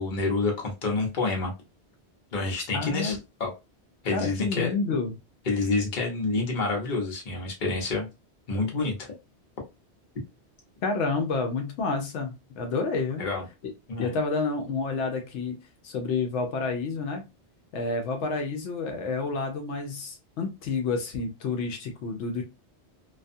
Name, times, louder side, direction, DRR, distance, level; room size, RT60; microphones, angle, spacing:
voice 1, 0.0-1.5 2.3-3.5 4.0-4.7 5.5-8.1 8.5-9.1 13.2-13.4 13.9-14.1, left 3 dB, 45° left, 0 dB, 0.9 m, -28 dB
voice 2, 2.7-3.2 4.1-5.1 10.8-13.3 13.6-13.7 14.0-15.6 15.8-17.2 17.7-22.4, left 4 dB, 80° left, 4 dB, 0.9 m, -29 dB
2.4 x 2.3 x 2.5 m, 0.26 s
omnidirectional pair, 1.2 m